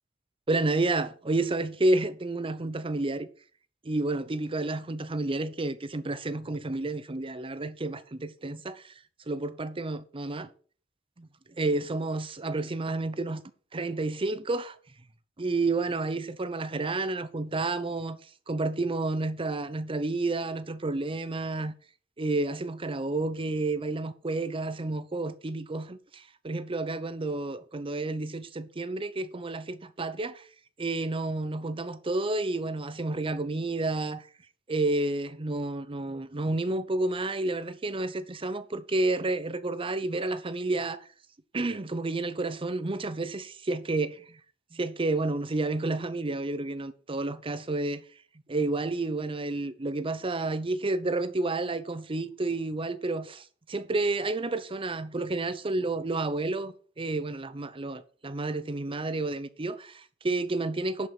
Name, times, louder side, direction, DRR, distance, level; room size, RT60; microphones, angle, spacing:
voice 1, 0.5-3.3 3.8-9.0 9.3-10.5 11.2-13.4 13.7-14.8 15.4-21.7 22.2-30.5 30.8-34.3 34.7-41.1 41.5-44.4 44.7-48.0 48.5-61.1, right 2 dB, 25° right, 0.7 m, -30 dB
11.0 x 5.4 x 6.0 m
head